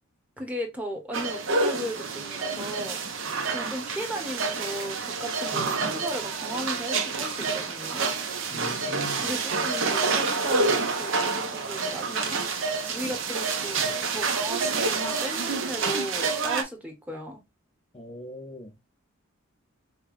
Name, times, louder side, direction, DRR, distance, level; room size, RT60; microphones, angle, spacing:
voice 1, 0.4-3.0 3.5-8.1 9.2-12.5 12.9-13.8 14.1-17.4, equal, 5° right, 0.9 m, -36 dB
sound 1, 1.1-16.6, right 4 dB, 65° right, 0.8 m, -28 dB
voice 2, 8.5-9.3 17.9-18.7, equal, 25° left, 0.6 m, -40 dB
5.3 x 2.2 x 2.4 m
head